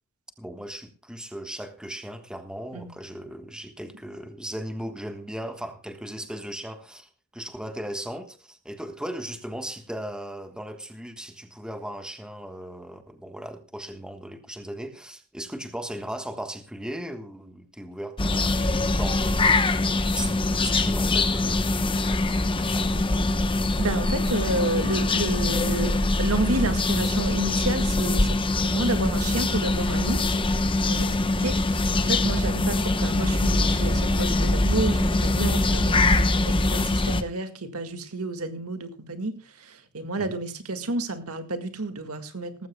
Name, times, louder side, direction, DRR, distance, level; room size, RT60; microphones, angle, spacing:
voice 1, 0.4-19.7 20.0-23.0 40.2-40.4, equal, 5° right, 1.3 m, -37 dB
sound 1, 18.2-37.2, left 2 dB, 25° left, 0.9 m, -23 dB
voice 2, 23.8-30.2 30.5-42.7, right 2 dB, 80° right, 1.9 m, -30 dB
18.5 x 15.5 x 2.3 m
head